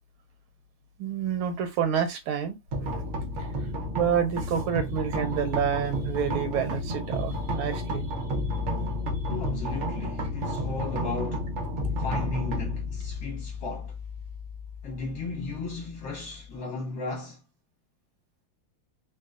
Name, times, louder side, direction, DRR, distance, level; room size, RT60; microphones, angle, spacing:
voice 1, 1.0-2.6 3.9-8.1, right 8 dB, 80° right, 1.5 m, -28 dB
sound 1, 2.7-16.6, left 1 dB, 65° right, 0.7 m, -32 dB
voice 2, 9.3-11.5 12.0-13.9 14.8-17.4, left 3 dB, 55° left, 1.4 m, -35 dB
3.8 x 2.3 x 2.4 m
omnidirectional pair, 2.3 m